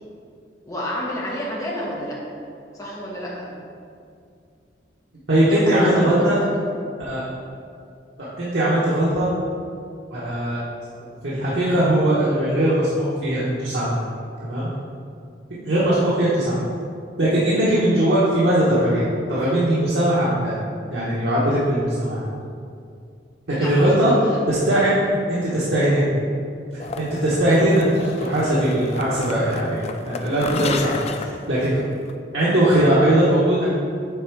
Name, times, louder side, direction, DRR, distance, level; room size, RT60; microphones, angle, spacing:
voice 1, 0.6-2.2 2.7-3.5 5.5-6.3 23.6-24.4 30.8-31.1, equal, 20° left, -5 dB, 1.2 m, -30 dB
voice 2, 5.3-6.4 7.0-7.2 8.2-9.3 10.1-10.6 11.2-14.0 14.4-14.7 15.5-16.6 17.2-20.5 20.9-22.3 23.5-24.1 24.5-25.0 25.3-26.1 27.0-31.8 32.3-33.7, right 1 dB, 90° right, -9 dB, 1.1 m, -20 dB
sound 1, 26.8-32.1, left 4 dB, 35° left, 0.3 m, -32 dB
7.1 x 3.5 x 4.6 m, 2.4 s
head